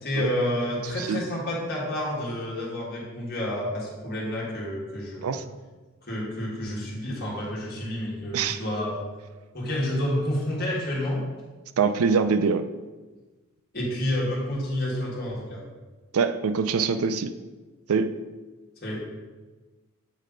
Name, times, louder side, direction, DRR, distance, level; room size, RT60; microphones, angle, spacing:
voice 1, 0.0-5.4 6.0-9.0 9.5-11.2 13.7-15.6 18.8-19.0, left 1 dB, 45° left, -4 dB, 1.8 m, -29 dB
voice 2, 11.8-12.7 16.1-17.3 17.9-18.2, right 5 dB, 85° right, 10 dB, 0.4 m, -24 dB
8.4 x 3.3 x 5.0 m, 1.2 s
head